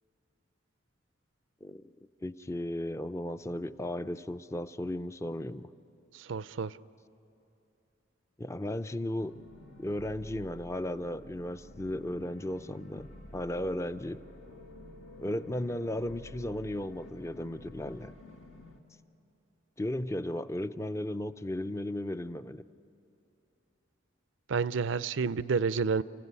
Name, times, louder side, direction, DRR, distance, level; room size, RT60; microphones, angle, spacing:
voice 1, 2.2-5.7 8.4-9.3 9.8-14.2 15.2-18.1 19.8-22.6, left 1 dB, 15° left, 12 dB, 0.5 m, -35 dB
voice 2, 6.1-6.8 24.5-26.0, right 5 dB, 70° right, 16 dB, 0.5 m, -30 dB
sound 1, 9.2-18.8, left 1 dB, 70° left, 1.8 m, -50 dB
30.0 x 16.0 x 9.6 m, 2.9 s
head